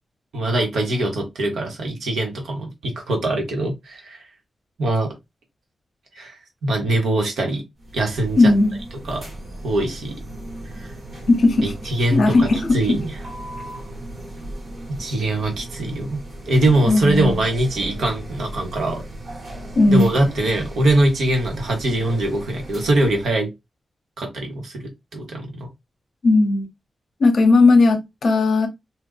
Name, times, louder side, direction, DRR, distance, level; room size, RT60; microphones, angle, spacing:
voice 1, 0.3-4.2 4.8-5.1 6.1-7.7 7.9-8.5 9.1-9.3 9.6-10.2 10.8-10.9 11.6-12.5 12.7-13.1 14.9-19.0 19.9-23.5 24.2-25.7, right 1 dB, 85° right, 0.9 m, -22 dB
sound 1, 7.8-23.4, right 1 dB, 50° right, 1.1 m, -36 dB
voice 2, 8.4-8.8 11.3-11.7 12.1-13.0 16.9-17.4 19.7-20.1 26.2-26.7 27.2-28.7, left 3 dB, 50° left, 0.7 m, -16 dB
3.7 x 2.2 x 2.2 m
wide cardioid pair, 175°, 0 cm